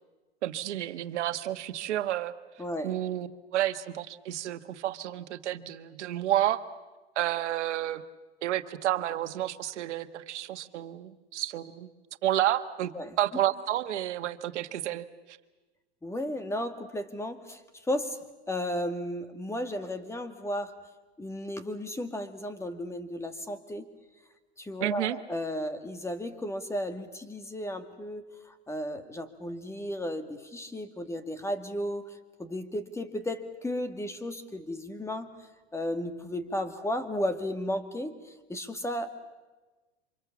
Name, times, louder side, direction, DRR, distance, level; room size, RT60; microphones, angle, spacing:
voice 1, 0.4-2.3 2.8-6.6 7.1-8.0 8.4-11.9 12.2-15.4 24.8-25.2, right 13 dB, 80° right, 10 dB, 1.6 m, -30 dB
voice 2, 2.6-3.0 12.9-13.2 16.0-18.2 18.5-20.8 21.2-23.9 24.6-39.1, left 1 dB, 10° left, 9 dB, 2.1 m, -34 dB
28.0 x 25.0 x 7.3 m, 1.2 s
hypercardioid pair, 125°, 34 cm